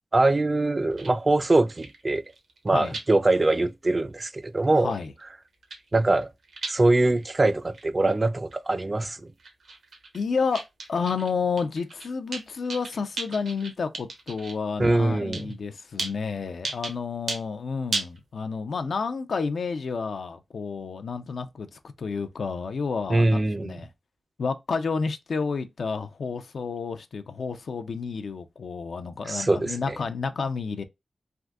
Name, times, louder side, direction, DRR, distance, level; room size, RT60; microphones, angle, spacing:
voice 1, 0.1-2.2 2.6-4.9 5.9-6.3 6.7-9.2 14.8-15.5 23.1-23.8 29.2-29.9, right 2 dB, 35° right, 0.4 m, -23 dB
sound 1, 0.9-1.1 1.4-1.5 1.7-3.0 3.4-3.7 4.0-4.1 4.6-5.2 5.5-6.7 7.1-7.3 7.7-8.5 8.8-9.1 9.4-10.2 10.5-11.3 11.6-14.5 15.3-15.5 16.0-16.1 16.6-16.9 17.3-17.4 17.9-18.2, right 3 dB, 80° right, 0.9 m, -35 dB
voice 2, 4.7-5.1 10.1-10.6 10.9-23.9 24.4-30.8, left 5 dB, 75° left, 0.4 m, -30 dB
3.5 x 2.5 x 2.3 m
cardioid pair, 60°, 0 cm